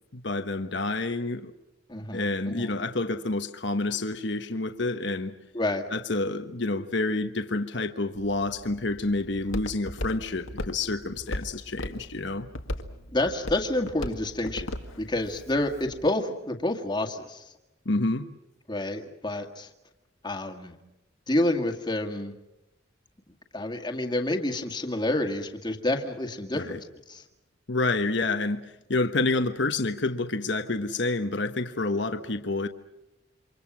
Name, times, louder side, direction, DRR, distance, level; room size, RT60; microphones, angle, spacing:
voice 1, 0.1-1.5 2.1-5.3 5.9-12.5 17.8-18.3 26.5-26.8 27.7-28.6 28.9-32.7, left 2 dB, 60° left, 1.3 m, -28 dB
voice 2, 1.9-2.7 5.5-5.9 13.1-14.7 15.0-17.4 18.7-19.7 20.2-20.7 21.3-22.3 23.5-27.2, left 1 dB, 20° left, 2.0 m, -29 dB
Walk footsteps, 8.1-16.1, left 1 dB, 80° left, 2.0 m, -38 dB
28.5 x 26.0 x 6.2 m
head